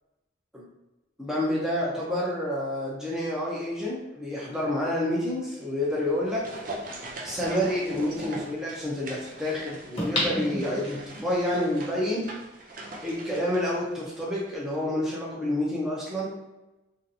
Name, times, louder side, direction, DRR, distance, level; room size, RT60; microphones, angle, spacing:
voice 1, 1.2-6.4 7.2-12.3 13.0-16.3, left 1 dB, 5° right, -6 dB, 0.7 m, -28 dB
sound 1, 5.9-14.5 14.7-14.8, right 1 dB, 45° right, 0.5 m, -41 dB
sound 2, 6.4-6.5 10.0-11.3 11.8-11.9, left 1 dB, 30° left, 0.9 m, -29 dB
3.1 x 2.8 x 2.6 m, 1.0 s
head